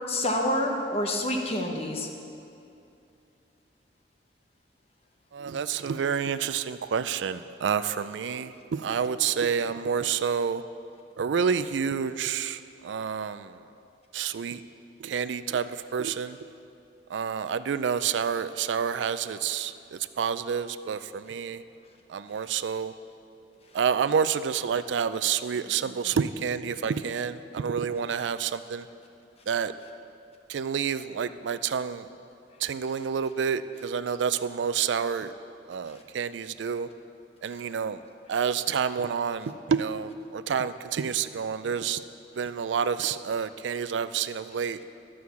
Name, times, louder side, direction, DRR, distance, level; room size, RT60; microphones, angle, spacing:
voice 1, 0.1-2.1 26.1-26.2, left 1 dB, 35° left, 2 dB, 1.1 m, -27 dB
voice 2, 5.3-10.6 11.2-13.6 14.1-14.6 15.0-16.4 17.1-21.6 22.1-22.9 23.7-28.9 29.5-29.7 30.5-32.1 32.6-35.3 35.7-36.9 37.4-38.0 38.3-42.0 42.4-44.8, right 7 dB, 85° right, 13 dB, 0.4 m, -29 dB
11.5 x 6.3 x 7.0 m, 2.6 s
head